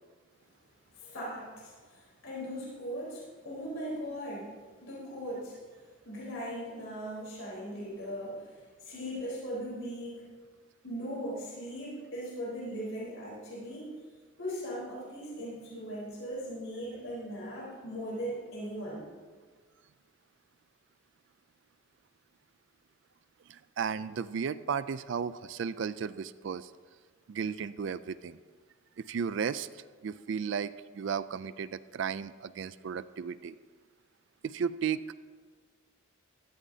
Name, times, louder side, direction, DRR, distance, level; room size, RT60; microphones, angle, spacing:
voice 1, 0.9-5.6 6.0-10.3 10.8-13.9 14.4-19.1, equal, 70° left, -5 dB, 3.8 m, -39 dB
voice 2, 23.5-26.7 27.3-28.4 29.0-33.5 34.4-35.1, right 6 dB, 60° right, 15 dB, 0.3 m, -34 dB
16.0 x 13.0 x 2.8 m, 1.5 s
head